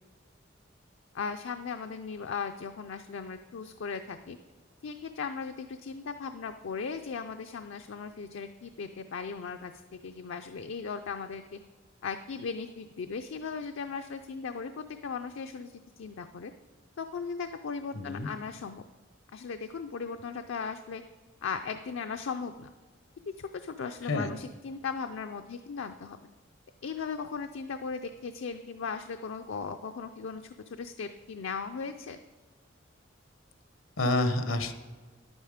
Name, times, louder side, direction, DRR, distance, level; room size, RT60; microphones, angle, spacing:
voice 1, 1.1-4.4 4.8-11.6 12.0-16.5 17.0-18.8 19.3-21.0 21.4-22.7 23.3-26.2 26.8-32.2, left 5 dB, 70° left, 7 dB, 0.4 m, -37 dB
voice 2, 17.9-18.3 24.1-24.3 34.0-34.7, left 2 dB, 90° left, 8 dB, 1.0 m, -28 dB
10.5 x 8.9 x 5.0 m, 1.4 s
head